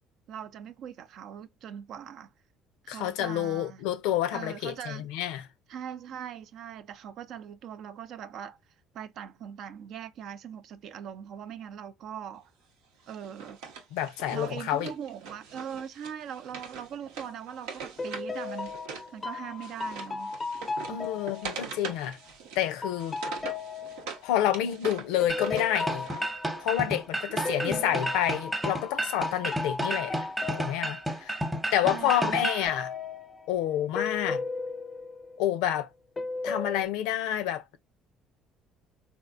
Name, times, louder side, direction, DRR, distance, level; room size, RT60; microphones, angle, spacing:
voice 1, 0.3-2.3 2.8-3.8 4.3-5.1 5.7-8.6 8.9-12.5 13.1-13.6 14.3-18.7 19.1-20.3 20.9-21.0 27.3-27.9 31.8-32.5, right 9 dB, 65° right, 0.4 m, -41 dB
voice 2, 2.9-5.5 13.9-14.9 20.9-22.2 22.6-23.2 24.2-26.1 26.6-30.3 30.6-31.4 31.7-32.9 33.5-34.4 35.4-35.9 36.4-37.8, left 11 dB, 80° left, 0.5 m, -29 dB
Wood, 13.1-19.1 19.4-24.2 24.5-26.3, right 5 dB, 85° right, 0.8 m, -42 dB
sound 1, 17.2-17.5 18.0-22.3 22.8-27.0 27.4-31.7 32.0-35.8 36.2-36.9, left 4 dB, 25° left, 0.4 m, -36 dB
sound 2, 25.3-32.7, right 1 dB, 15° right, 0.9 m, -32 dB
3.5 x 2.4 x 2.4 m
supercardioid pair, 80°, 0 cm